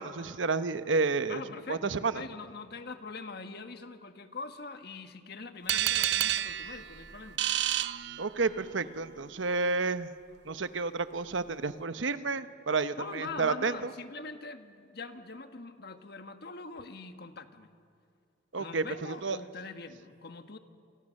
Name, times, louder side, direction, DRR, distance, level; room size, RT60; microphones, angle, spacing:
voice 1, 0.0-1.4 1.7-2.1 8.2-10.1 10.5-13.9 18.5-19.4, right 4 dB, 80° right, 12 dB, 0.9 m, -30 dB
voice 2, 1.3-7.4 13.0-17.7 18.6-20.6, left 3 dB, 55° left, 8 dB, 1.5 m, -43 dB
sound 1, 5.7-8.7, right 12 dB, 65° right, 0.6 m, -30 dB
28.0 x 27.5 x 6.5 m, 2.4 s
head